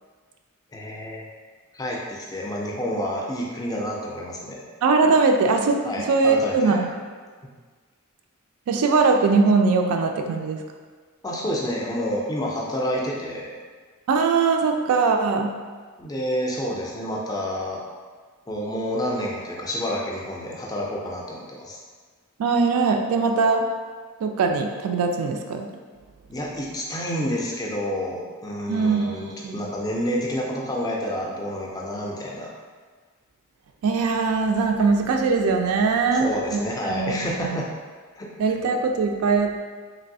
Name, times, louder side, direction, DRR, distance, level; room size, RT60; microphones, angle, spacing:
voice 1, 0.7-1.3 1.7-4.6 5.8-7.0 11.2-13.5 16.0-17.8 18.5-21.8 26.3-32.5 36.1-37.7 38.2-38.3, equal, 15° left, -2 dB, 0.3 m, -29 dB
voice 2, 4.8-5.8 6.0-6.9 8.7-10.6 14.1-15.5 22.4-23.6 24.2-25.7 28.7-29.2 29.4-29.6 33.8-37.6 38.4-39.6, right 4 dB, 80° right, 4 dB, 0.3 m, -21 dB
3.1 x 2.6 x 2.6 m, 1.5 s
head